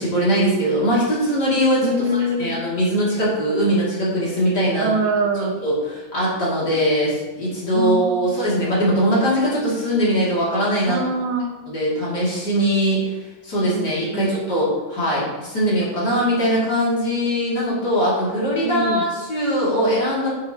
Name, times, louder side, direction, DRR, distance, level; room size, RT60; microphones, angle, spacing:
voice 1, 0.0-1.9 2.4-4.9 5.6-5.7 6.1-11.0 11.7-13.0 13.4-20.3, equal, 25° left, -8 dB, 2.7 m, -21 dB
voice 2, 1.8-2.6 4.8-5.6 7.7-8.6 10.9-11.6 13.7-13.8 14.1-14.4 18.6-19.1, right 2 dB, 80° right, 3 dB, 2.4 m, -24 dB
9.3 x 9.0 x 3.2 m, 1.2 s
omnidirectional pair, 5.8 m